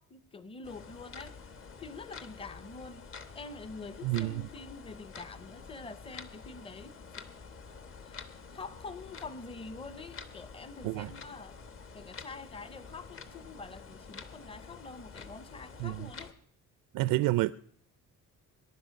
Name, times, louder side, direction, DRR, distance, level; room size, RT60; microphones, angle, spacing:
voice 1, 0.0-1.4 1.8-7.3 8.0-11.6 11.9-16.3 17.1-17.2, left 4 dB, 15° left, 0.7 m, -46 dB
sound 1, 0.6-16.3, left 5 dB, 40° left, 1.1 m, -48 dB
voice 2, 4.0-4.4 10.8-11.1 15.8-16.1 16.9-17.5, right 18 dB, 90° right, 0.5 m, -29 dB
22.0 x 10.5 x 5.2 m
cardioid pair, 170°, 33 cm